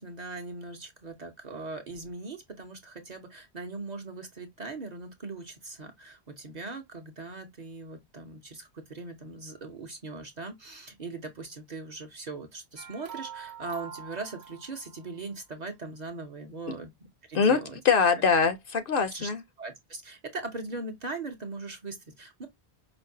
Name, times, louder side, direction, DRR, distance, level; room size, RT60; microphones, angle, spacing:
voice 1, 0.0-16.9 17.3-17.8 19.1-19.3 19.6-22.5, right 3 dB, 45° right, 0.7 m, -40 dB
sound 1, 12.8-15.2, right 8 dB, 70° right, 1.0 m, -44 dB
voice 2, 17.3-19.4, left 5 dB, 60° left, 0.7 m, -23 dB
5.1 x 2.0 x 2.6 m
omnidirectional pair, 1.1 m